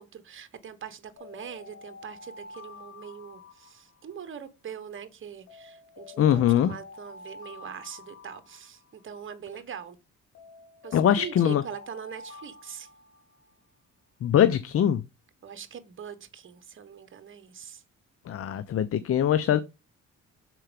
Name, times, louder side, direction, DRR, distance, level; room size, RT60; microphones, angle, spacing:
voice 1, 0.0-10.0 10.8-12.9 15.4-17.8, right 8 dB, 40° right, 1.2 m, -42 dB
sound 1, 1.2-4.3 5.5-9.2 10.3-13.6, left 4 dB, 65° left, 2.5 m, -48 dB
voice 2, 6.2-6.7 10.9-11.6 14.2-15.0 18.3-19.6, left 10 dB, 50° left, 0.5 m, -22 dB
6.6 x 4.6 x 5.0 m
cardioid pair, 90°, 30 cm